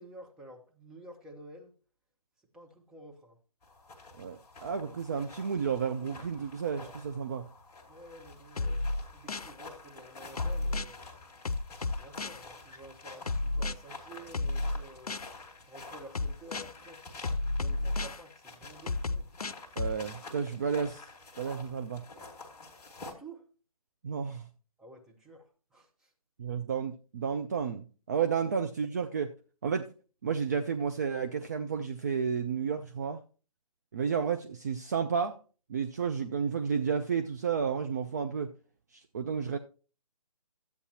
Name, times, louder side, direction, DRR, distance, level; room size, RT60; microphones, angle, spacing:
voice 1, 0.0-1.7 2.5-3.4 7.9-8.9 9.1-11.0 11.9-15.2 15.7-17.2 17.5-19.3 23.0-23.5 24.8-26.1, right 1 dB, 5° right, 0.8 m, -51 dB
sound 1, 3.6-23.1, left 3 dB, 15° left, 1.5 m, -49 dB
voice 2, 4.2-7.5 19.8-21.1 21.4-22.0 24.0-24.5 26.4-29.3 29.6-29.9 30.2-33.2 33.9-35.4 35.7-38.5 38.9-39.6, right 6 dB, 30° right, 0.4 m, -32 dB
sound 2, 8.6-9.5 10.4-10.9 11.4-12.4 13.3-13.7 14.3-15.3 16.1-16.7 17.2-18.2 18.9-20.0, left 2 dB, 80° left, 0.5 m, -31 dB
12.5 x 8.3 x 2.8 m
figure-of-eight pair, 140°, 19 cm